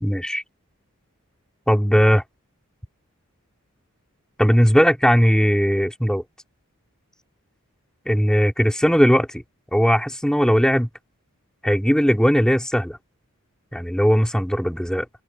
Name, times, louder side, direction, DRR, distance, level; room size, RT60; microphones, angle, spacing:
voice 1, 0.0-0.4 1.7-2.2 4.4-6.2 8.1-9.4 9.7-10.9 11.6-13.0 13.7-15.1, equal, 5° left, 2.2 m, -18 dB
open air
head